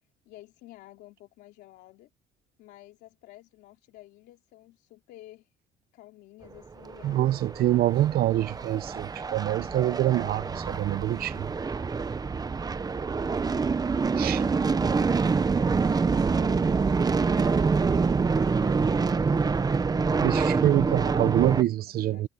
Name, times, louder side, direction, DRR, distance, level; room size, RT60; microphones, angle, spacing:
voice 1, 0.2-2.1 2.6-5.5 5.9-8.1 13.1-13.7 15.5-19.2 21.6-22.3, left 15 dB, 85° left, 3.0 m, -52 dB
sound 1, 6.9-21.6, right 4 dB, 20° right, 0.8 m, -26 dB
voice 2, 7.0-11.5 14.2-14.4 20.2-22.3, right 14 dB, 65° right, 0.7 m, -25 dB
cardioid pair, 110°, 17 cm